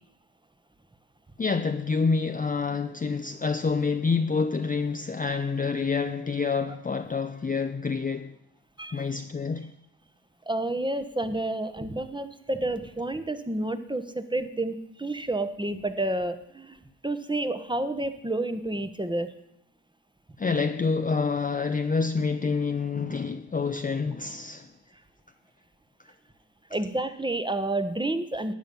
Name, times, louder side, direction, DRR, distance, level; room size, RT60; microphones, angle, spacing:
voice 1, 1.4-8.3 8.9-9.7 20.4-24.7, left 4 dB, 20° left, 0.7 m, -27 dB
voice 2, 8.8-9.1 10.5-16.8 17.0-19.3 26.7-28.5, right 2 dB, 10° right, 1.2 m, -30 dB
12.0 x 8.8 x 5.5 m
hypercardioid pair, 50°, 42 cm